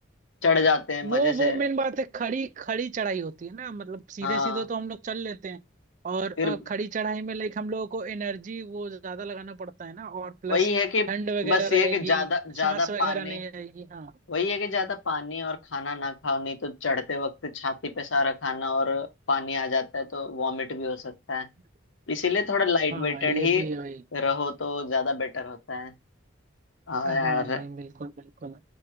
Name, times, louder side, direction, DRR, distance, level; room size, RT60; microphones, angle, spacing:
voice 1, 0.4-1.6 4.2-4.6 6.4-6.6 10.5-11.1 11.4-13.4 14.3-21.5 22.1-23.6 24.1-25.9 26.9-27.6, left 4 dB, 85° left, 0.9 m, -27 dB
voice 2, 1.0-5.6 6.0-10.7 11.1-12.3 12.6-14.1 22.9-24.0 27.0-28.6, right 4 dB, 40° right, 0.3 m, -31 dB
5.0 x 2.3 x 4.3 m
head